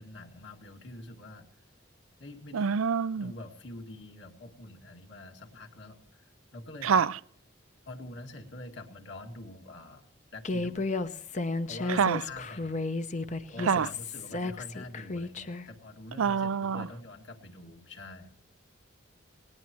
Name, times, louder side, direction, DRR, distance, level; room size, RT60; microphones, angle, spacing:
voice 1, 0.0-1.5 2.2-2.7 3.1-7.1 7.9-10.0 10.3-11.0 11.7-12.8 13.5-18.3, left 2 dB, 65° left, 2.3 m, -45 dB
voice 2, 2.5-3.3 6.8-7.1 12.0-12.2 13.7-13.9 16.2-16.9, right 6 dB, 90° right, 0.5 m, -26 dB
Human voice, 10.4-15.7, left 3 dB, 35° left, 0.7 m, -33 dB
19.5 x 19.0 x 3.1 m
head